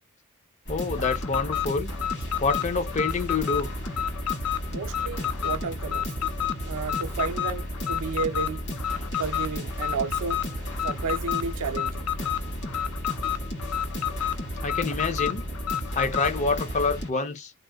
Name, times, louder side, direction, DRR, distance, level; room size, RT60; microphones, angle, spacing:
sound 1, 0.7-17.1, equal, 55° left, 1.2 m, -34 dB
voice 1, 0.7-1.9 2.4-3.7 8.9-9.1 14.6-15.4 15.9-17.5, left 4 dB, 30° left, 0.4 m, -27 dB
Alarm, 0.9-16.4, left 12 dB, 85° left, 0.5 m, -30 dB
voice 2, 4.7-6.1 6.6-8.6 9.2-10.4 10.8-12.1, right 5 dB, 75° right, 0.4 m, -32 dB
2.8 x 2.0 x 2.2 m
head